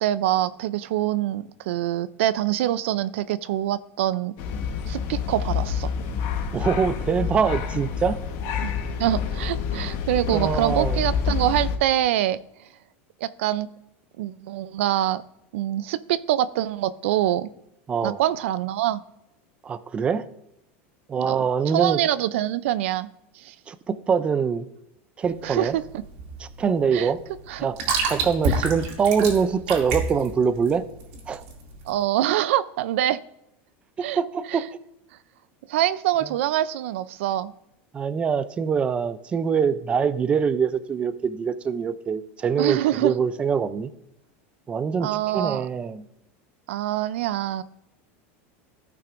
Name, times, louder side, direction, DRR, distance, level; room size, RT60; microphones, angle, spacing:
voice 1, 0.0-4.3 4.9-5.9 8.6-8.7 9.0-12.4 13.2-13.7 14.2-15.2 15.5-17.5 18.0-19.0 21.2-23.1 23.4-23.5 25.4-25.8 26.9-27.1 27.5-27.7 31.9-33.2 34.0-34.2 34.5-34.6 35.7-37.5 42.6-43.1 45.0-45.7 46.7-47.6, right 13 dB, 80° right, 16 dB, 0.4 m, -25 dB
sound 1, 4.4-11.8, left 7 dB, 55° left, 1.2 m, -28 dB
voice 2, 6.5-8.2 10.3-11.0 17.9-18.2 19.6-20.3 21.1-22.0 23.7-24.7 25.2-25.8 26.4-27.2 27.6-27.8 28.1-30.8 31.3-31.4 34.0-34.6 37.9-43.9 44.7-46.0, right 6 dB, 15° right, 14 dB, 0.4 m, -24 dB
sound 2, 25.2-31.9, right 3 dB, 60° right, 2.3 m, -29 dB
15.0 x 5.8 x 2.5 m, 0.85 s
supercardioid pair, 155°, 7 cm